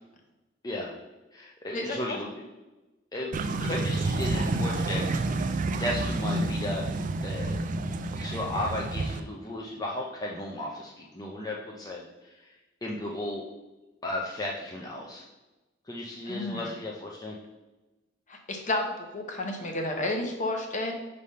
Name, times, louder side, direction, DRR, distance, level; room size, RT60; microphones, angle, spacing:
voice 1, 0.6-0.9 1.3-2.4 3.1-6.9 7.2-7.6 8.2-12.6 12.8-13.5 14.0-15.3 15.8-17.4, left 1 dB, 20° left, -2 dB, 0.6 m, -35 dB
voice 2, 1.7-2.2 16.3-16.7 18.3-20.9, left 2 dB, 40° left, 3 dB, 0.9 m, -31 dB
sound 1, 3.3-9.2, right 2 dB, 40° right, 0.3 m, -29 dB
5.4 x 3.3 x 5.4 m, 1.1 s
head